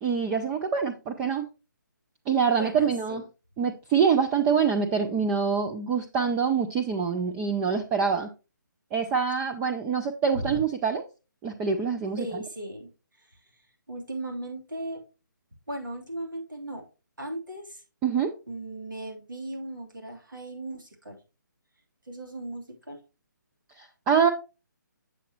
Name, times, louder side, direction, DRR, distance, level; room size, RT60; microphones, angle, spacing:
voice 1, 0.0-1.5 2.3-3.2 3.6-8.3 8.9-11.0 11.4-12.4 18.0-18.3 23.8-24.3, right 6 dB, 15° right, 4 dB, 0.4 m, -25 dB
voice 2, 2.5-3.2 10.3-10.6 12.2-12.9 13.2-13.3 13.9-15.0 15.7-16.8 17.2-17.8 18.5-21.2 22.1-23.0, right 1 dB, 80° right, 1 dB, 3.1 m, -37 dB
8.2 x 7.3 x 2.9 m, 0.30 s
figure-of-eight pair, 150°, 11 cm